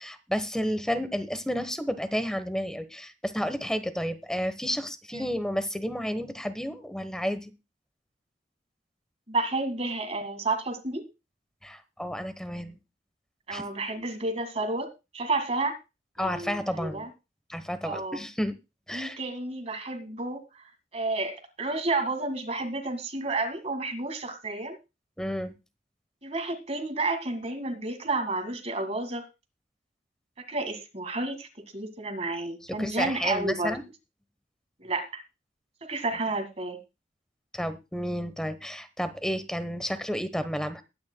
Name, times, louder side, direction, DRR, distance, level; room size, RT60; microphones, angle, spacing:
voice 1, 0.0-7.5 11.6-12.8 13.5-13.6 16.2-17.1 17.5-18.5 18.9-19.2 25.2-25.5 32.8-33.9 37.5-40.8, equal, 5° left, 11 dB, 1.0 m, -31 dB
voice 2, 9.3-11.1 13.5-15.8 16.2-17.1 17.8-18.2 18.9-20.7 20.9-24.8 26.2-29.2 30.5-31.5 31.7-33.8 34.8-35.2 35.8-36.8, right 2 dB, 35° right, 5 dB, 1.8 m, -31 dB
21.0 x 9.5 x 2.2 m, 0.27 s
head